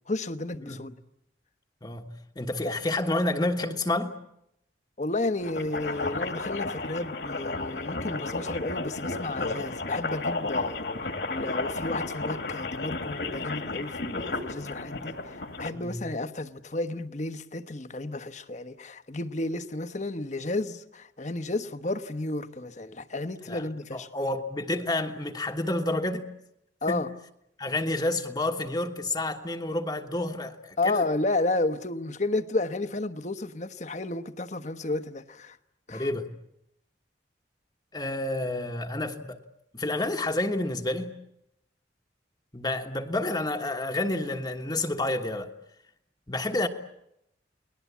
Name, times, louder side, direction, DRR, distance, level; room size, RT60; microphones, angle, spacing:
voice 1, 0.1-0.9 2.6-2.7 5.0-10.8 11.3-24.1 26.8-27.1 30.8-35.6 35.9-36.1, left 2 dB, 40° left, 1.1 m, -32 dB
voice 2, 1.8-4.1 15.8-16.0 23.5-23.6 23.9-26.3 26.9-27.0 27.6-31.0 35.9-36.3 37.9-39.4 39.7-41.1 42.5-45.5 46.3-46.7, left 2 dB, 25° left, 1.4 m, -29 dB
sound 1, 5.4-15.7, left 3 dB, 65° left, 2.3 m, -33 dB
30.0 x 20.5 x 8.4 m
head